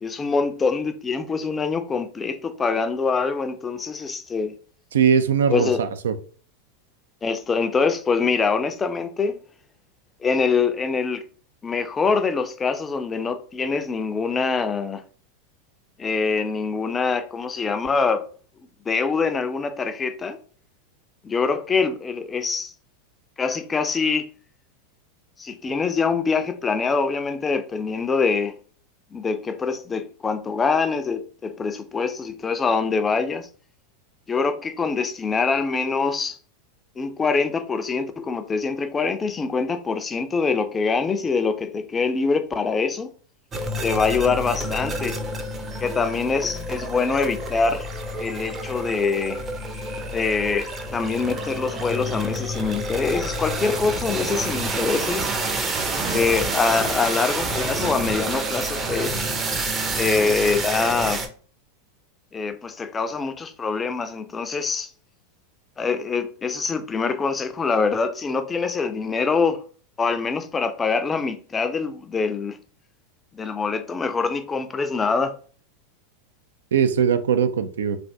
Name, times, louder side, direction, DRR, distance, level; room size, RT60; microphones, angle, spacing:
voice 1, 0.0-4.5 5.5-5.8 7.2-9.4 10.2-11.2 11.6-15.0 16.0-18.3 18.9-20.4 21.2-22.7 23.4-24.3 25.4-28.5 29.1-33.5 34.3-36.4 37.0-43.1 43.8-45.2 45.8-47.9 48.2-49.4 50.1-55.3 56.1-59.2 60.0-61.2 62.3-64.9 65.8-69.6 70.0-72.6 73.3-75.3, left 4 dB, 20° left, 0.4 m, -24 dB
voice 2, 4.9-6.1 76.7-78.0, right 7 dB, 80° right, 0.3 m, -20 dB
sound 1, 43.5-61.3, right 2 dB, 25° right, 0.6 m, -28 dB
3.3 x 2.5 x 2.6 m
hypercardioid pair, 100°, 0 cm